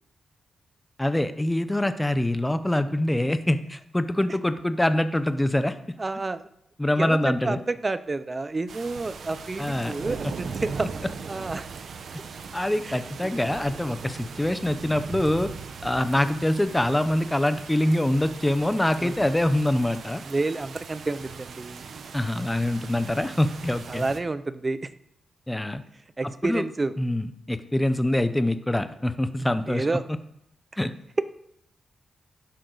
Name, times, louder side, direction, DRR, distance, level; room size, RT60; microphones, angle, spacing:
voice 1, 1.0-5.7 6.8-7.6 9.6-9.9 10.2-10.3 12.5-15.5 15.8-20.2 22.1-24.0 25.5-25.8 26.4-26.6 27.0-29.9 30.8-30.9, left 1 dB, 10° left, 11 dB, 0.7 m, -24 dB
voice 2, 6.0-6.5 7.0-10.9 11.3-11.7 12.8-13.3 19.0-19.2 20.2-21.9 23.9-24.9 26.2-26.9 29.7-30.0, right 3 dB, 25° right, 13 dB, 0.6 m, -30 dB
sound 1, 8.7-24.2, right 5 dB, 65° right, 1.0 m, -39 dB
11.5 x 10.5 x 4.0 m, 0.76 s
wide cardioid pair, 120°, 0 cm